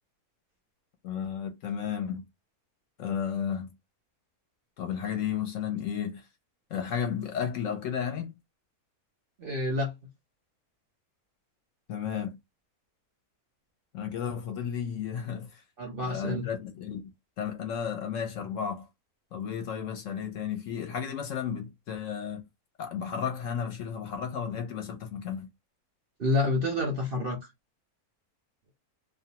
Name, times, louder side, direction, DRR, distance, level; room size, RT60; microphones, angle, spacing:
voice 1, 1.0-2.2 3.0-3.7 4.8-6.3 6.7-8.3 11.9-12.4 13.9-15.6 16.1-17.1 17.4-18.9 19.3-22.4 22.8-25.5, left 8 dB, 65° left, 0.9 m, -33 dB
voice 2, 9.4-9.9 15.8-16.5 26.2-27.4, left 2 dB, 50° right, 0.7 m, -28 dB
2.5 x 2.2 x 2.8 m
omnidirectional pair, 1.6 m